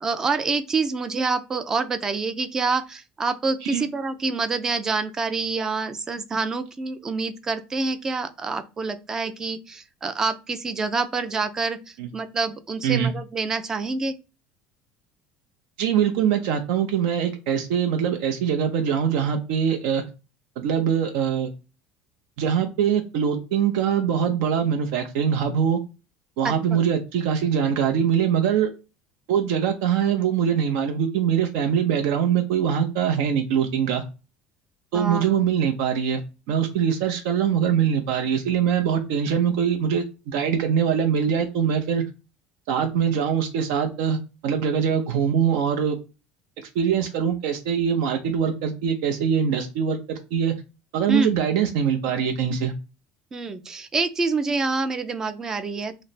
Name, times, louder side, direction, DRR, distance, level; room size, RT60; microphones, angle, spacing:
voice 1, 0.0-11.8 12.1-14.1 26.4-26.8 34.9-35.3 51.1-51.4 53.3-56.0, right 4 dB, 15° right, 0.3 m, -27 dB
voice 2, 15.8-20.0 20.6-21.5 22.4-25.8 26.4-28.7 29.3-34.0 34.9-36.2 36.5-42.0 42.7-44.2 44.4-46.0 46.6-50.5 50.9-52.7, right 8 dB, 75° right, 0.5 m, -23 dB
3.2 x 2.0 x 3.9 m
cardioid pair, 165°, 3 cm